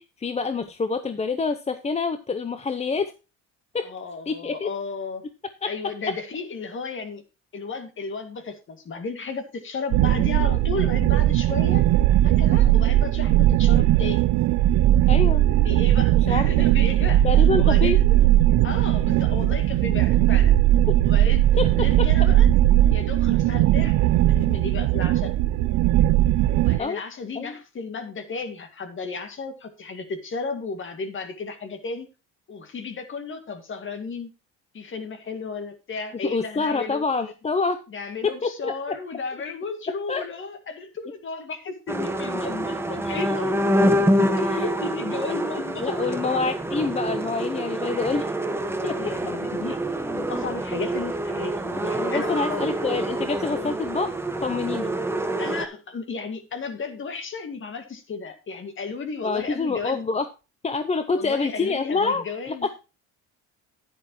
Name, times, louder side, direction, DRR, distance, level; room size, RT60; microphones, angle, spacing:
voice 1, 0.0-3.1 3.7-3.9 4.3-4.7 5.6-5.7 15.1-15.6 16.3-16.5 17.2-18.0 20.9-21.0 21.6-22.3 26.8-27.0 27.4-27.6 36.2-37.8 38.2-39.0 40.1-40.2 43.0-43.4 44.4-44.7 45.8-48.3 48.8-49.0 49.3-49.4 51.9-54.1 54.4-55.0 59.2-60.3 60.6-62.7, left 4 dB, 20° left, 11 dB, 0.7 m, -27 dB
voice 2, 3.8-5.3 5.6-7.2 7.5-11.9 12.2-14.4 15.6-18.0 18.6-20.6 21.0-21.5 21.7-22.5 22.9-25.3 26.6-32.1 32.5-34.3 34.7-37.1 37.9-43.6 44.2-46.2 49.0-49.8 50.1-52.7 53.6-53.8 55.4-60.0 61.1-62.7, left 4 dB, 40° left, 8 dB, 2.1 m, -34 dB
sound 1, 9.9-26.8, right 14 dB, 65° right, 0.5 m, -19 dB
sound 2, 41.9-55.7, right 1 dB, 10° right, 1.2 m, -26 dB
10.5 x 10.0 x 3.0 m, 0.30 s
cardioid pair, 105°, 31 cm